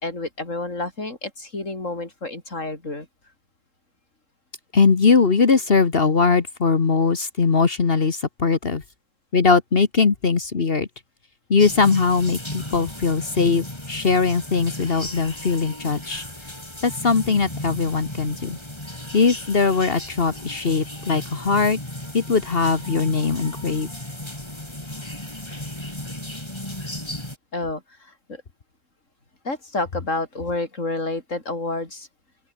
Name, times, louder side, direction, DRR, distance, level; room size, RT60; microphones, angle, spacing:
voice 1, 0.0-3.1 27.5-28.4 29.4-32.1, left 2 dB, 65° left, 5.5 m, -29 dB
voice 2, 4.7-8.8 9.3-10.9 11.5-16.2 16.8-18.6 19.1-21.8 22.1-23.9, left 4 dB, 45° left, 1.6 m, -20 dB
sound 1, 11.6-27.4, left 1 dB, 20° left, 4.8 m, -35 dB
open air
omnidirectional pair, 1.4 m